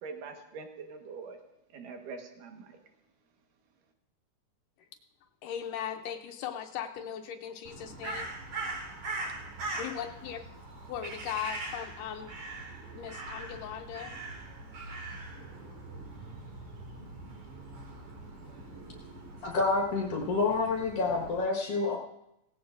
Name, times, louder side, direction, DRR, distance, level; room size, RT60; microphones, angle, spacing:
voice 1, 0.0-1.4 1.7-2.8, right 4 dB, 80° right, 3 dB, 3.0 m, -43 dB
voice 2, 5.4-8.3 9.8-10.4 10.9-12.3 12.9-14.1, left 9 dB, 80° left, 5 dB, 2.3 m, -38 dB
Crow, 7.6-21.4, right 2 dB, 65° right, 3.7 m, -42 dB
voice 3, 19.4-22.0, left 3 dB, 55° left, -1 dB, 2.3 m, -28 dB
17.5 x 17.0 x 2.5 m, 0.85 s
omnidirectional pair, 3.8 m